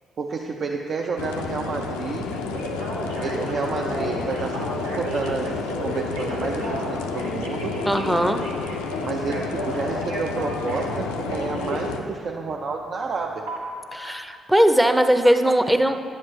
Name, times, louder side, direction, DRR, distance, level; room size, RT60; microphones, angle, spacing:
voice 1, 0.2-2.3 3.2-5.5 5.8-7.8 9.0-13.5, right 4 dB, 55° right, 0 dB, 0.5 m, -30 dB
sound 1, 1.2-12.0, left 4 dB, 80° left, 0.4 m, -31 dB
Telephone, 2.3-11.9 13.5-13.6, right 1 dB, 90° right, 1.1 m, -33 dB
voice 2, 7.9-8.4 13.9-16.1, equal, 5° right, 7 dB, 0.6 m, -19 dB
10.0 x 7.3 x 3.2 m, 2.3 s
hypercardioid pair, 45°, 0 cm